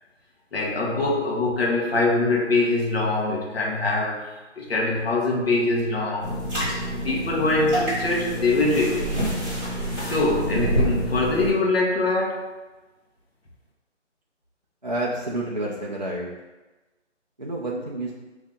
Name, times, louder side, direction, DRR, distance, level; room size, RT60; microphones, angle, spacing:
voice 1, 0.5-6.4 6.9-9.1 10.0-12.5, left 2 dB, 55° left, -1 dB, 1.1 m, -23 dB
sound 1, 6.2-11.5, equal, ahead, 0.8 m, -27 dB
voice 2, 14.8-16.3 17.4-18.1, right 1 dB, 40° right, -3 dB, 0.4 m, -29 dB
5.1 x 2.7 x 3.5 m, 1.1 s
hypercardioid pair, 170°, 36 cm